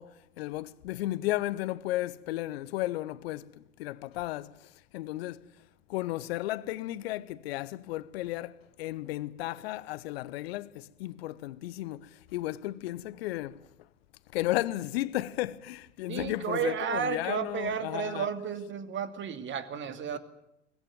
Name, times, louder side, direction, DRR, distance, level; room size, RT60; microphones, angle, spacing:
voice 1, 0.0-5.4 5.9-13.7 14.3-18.3, left 16 dB, 55° left, 1.1 m, -34 dB
voice 2, 16.1-20.2, right 7 dB, 30° right, 2.6 m, -32 dB
23.5 x 19.5 x 9.2 m
figure-of-eight pair, 80°, 37 cm